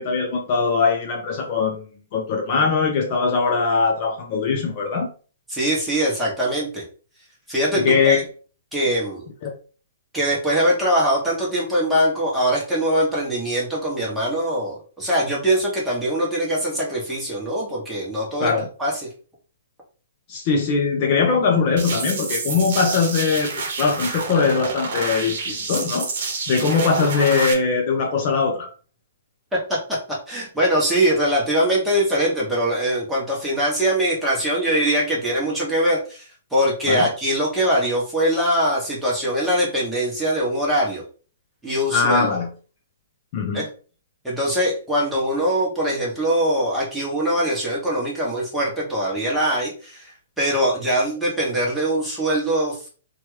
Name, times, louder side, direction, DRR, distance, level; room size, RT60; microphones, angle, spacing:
voice 1, 0.0-1.9 2.1-5.1 7.7-8.2 9.4-9.5 18.4-18.7 20.3-23.5 23.8-26.1 26.5-28.7 36.9-37.1 41.9-42.5 43.3-43.6, left 5 dB, 35° left, 1 dB, 0.5 m, -21 dB
voice 2, 5.5-6.8 7.5-8.2 8.7-9.2 10.1-18.5 18.8-18.9 29.5-30.0 30.3-41.0 41.6-42.3 43.5-43.7 44.2-52.9, equal, 5° right, -6 dB, 1.0 m, -22 dB
sound 1, 21.8-27.5, right 4 dB, 50° right, 0.9 m, -28 dB
2.8 x 2.3 x 3.1 m, 0.38 s
hypercardioid pair, 165°, 0 cm